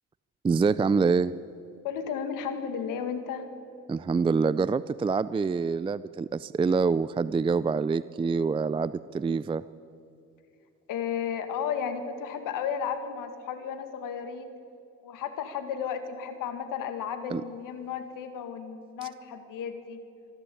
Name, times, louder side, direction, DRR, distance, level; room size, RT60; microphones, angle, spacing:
voice 1, 0.4-1.3 3.9-9.6 17.3-17.4, right 4 dB, 15° right, 16 dB, 0.4 m, -26 dB
voice 2, 1.8-3.5 10.9-14.5 15.0-20.0, left 7 dB, 85° left, 9 dB, 2.0 m, -33 dB
25.5 x 12.0 x 8.5 m, 2.7 s
cardioid pair, 95°, 32 cm